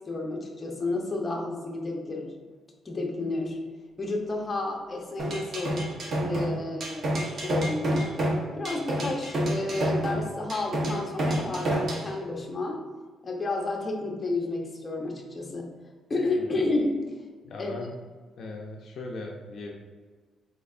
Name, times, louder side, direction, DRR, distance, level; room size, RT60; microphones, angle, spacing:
voice 1, 0.1-2.3 2.8-3.6 4.0-5.8 6.2-8.1 8.6-12.8 13.2-15.7 16.1-17.0 17.6-17.7, left 2 dB, 25° left, 0 dB, 0.7 m, -31 dB
sound 1, 5.2-12.1, right 1 dB, 50° right, 0.8 m, -28 dB
voice 2, 17.4-17.9 18.4-19.7, left 2 dB, 55° left, 0 dB, 0.4 m, -38 dB
4.2 x 3.2 x 2.4 m, 1.5 s
cardioid pair, 115°, 0 cm